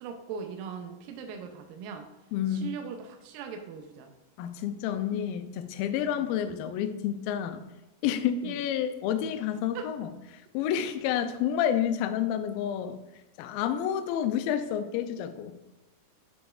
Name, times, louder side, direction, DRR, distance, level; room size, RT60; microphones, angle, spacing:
voice 1, 0.0-2.1 2.5-4.1 5.1-5.2 8.4-8.5 9.7-9.9, right 6 dB, 80° right, 4 dB, 2.2 m, -40 dB
voice 2, 2.3-2.7 4.4-7.6 8.0-13.0 13.4-15.6, left 9 dB, 80° left, 9 dB, 2.2 m, -29 dB
9.6 x 5.2 x 2.4 m, 1.0 s
omnidirectional pair, 4.3 m